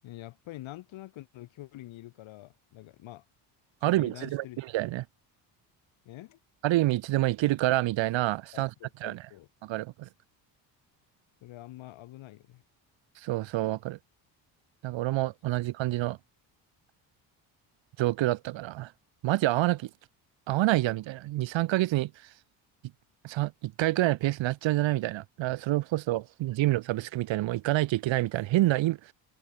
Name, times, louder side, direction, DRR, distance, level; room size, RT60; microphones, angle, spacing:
voice 1, 0.0-3.3 3.8-4.6 6.0-6.4 8.5-9.5 11.4-12.6, left 16 dB, 75° left, 7.6 m, -46 dB
voice 2, 3.8-5.0 6.6-8.7 9.0-9.2 9.6-10.1 13.2-14.0 14.8-16.2 18.0-18.9 19.2-19.9 20.5-22.1 23.2-29.1, right 16 dB, 70° right, 1.9 m, -27 dB
supercardioid pair, 80°, 47 cm